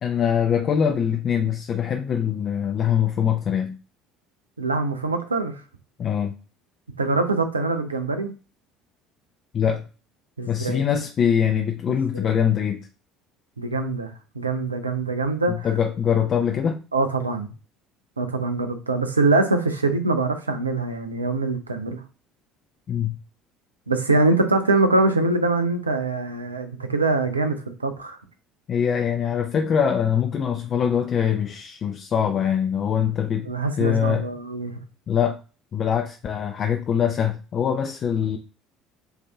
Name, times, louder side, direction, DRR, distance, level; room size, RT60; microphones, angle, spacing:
voice 1, 0.0-3.8 6.0-6.3 9.5-9.8 10.5-12.8 15.5-16.8 22.9-23.2 28.7-33.5 33.8-34.3 35.1-35.4 35.7-38.4, left 8 dB, 40° left, 0.5 m, -23 dB
voice 2, 4.6-5.6 7.0-8.3 10.4-10.9 12.1-12.3 13.6-15.7 16.9-17.5 18.2-22.0 23.9-28.2 33.4-34.7, right 3 dB, 85° right, 0.6 m, -23 dB
7.9 x 2.8 x 2.3 m
figure-of-eight pair, 60°, 0 cm